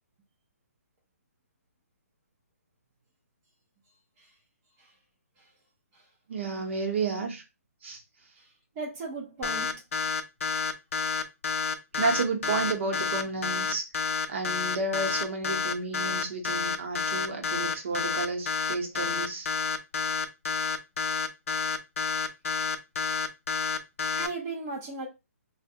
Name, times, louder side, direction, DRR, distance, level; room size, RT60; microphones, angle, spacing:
voice 1, 6.3-7.4 7.8-8.0 12.0-19.5, right 3 dB, 50° right, 0.7 m, -31 dB
voice 2, 8.8-9.7 24.2-25.1, right 3 dB, 15° right, 0.4 m, -36 dB
sound 1, 9.4-24.3, left 5 dB, 60° left, 0.4 m, -29 dB
3.3 x 2.1 x 2.6 m
hypercardioid pair, 165°, 8 cm